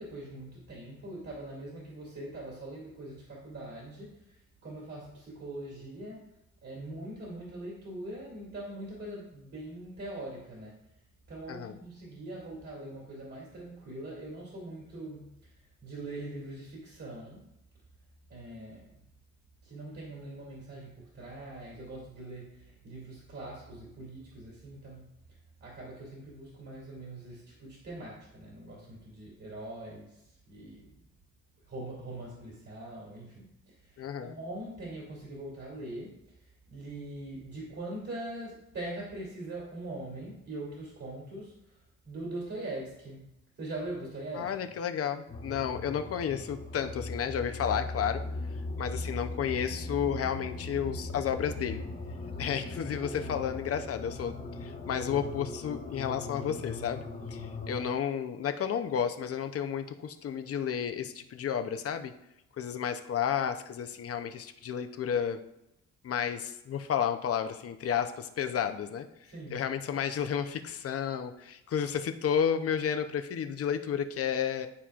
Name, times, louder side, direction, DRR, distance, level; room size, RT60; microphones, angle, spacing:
voice 1, 0.0-6.4 6.6-10.8 11.3-17.5 18.3-19.0 19.6-25.2 25.6-30.9 31.7-41.8 42.0-44.5 69.2-69.6, right 1 dB, 50° right, -5 dB, 2.6 m, -42 dB
voice 2, 34.0-34.3 44.4-48.2 48.8-51.8 52.4-54.3 54.6-62.1 62.6-65.4 66.0-69.1 69.5-74.7, left 8 dB, 50° left, 8 dB, 0.7 m, -32 dB
sound 1, 45.3-57.8, left 2 dB, 30° left, 1.2 m, -39 dB
11.5 x 4.3 x 2.4 m, 0.84 s
cardioid pair, 90°, 30 cm